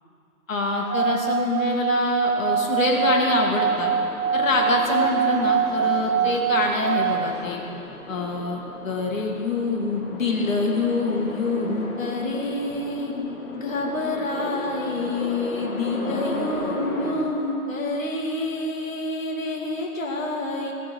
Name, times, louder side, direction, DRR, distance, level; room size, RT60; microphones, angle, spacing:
voice 1, 0.5-3.9 4.3-7.6 8.1-13.1 13.5-20.7, left 3 dB, 65° left, 0 dB, 2.4 m, -26 dB
Singing / Glass, 0.8-7.4, right 8 dB, 80° right, 0.8 m, -24 dB
sound 1, 2.9-17.1, left 2 dB, 85° left, 2.5 m, -36 dB
17.0 x 6.2 x 7.9 m, 2.9 s
figure-of-eight pair, 135°, 44 cm